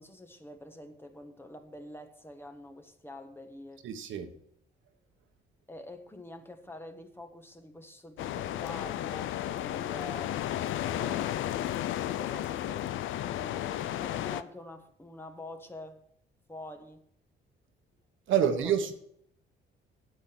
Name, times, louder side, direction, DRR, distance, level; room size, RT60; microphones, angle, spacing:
voice 1, 0.0-3.9 5.7-10.4 10.9-11.4 12.0-12.9 13.2-16.0 16.5-17.0 18.3-18.4 18.6-18.7, left 1 dB, 10° left, 1.5 m, -46 dB
voice 2, 3.8-4.3 18.3-18.9, right 8 dB, 75° right, 1.4 m, -27 dB
sound 1, 8.2-14.4, left 12 dB, 80° left, 0.6 m, -33 dB
9.1 x 7.9 x 6.1 m
cardioid pair, 90°, 20 cm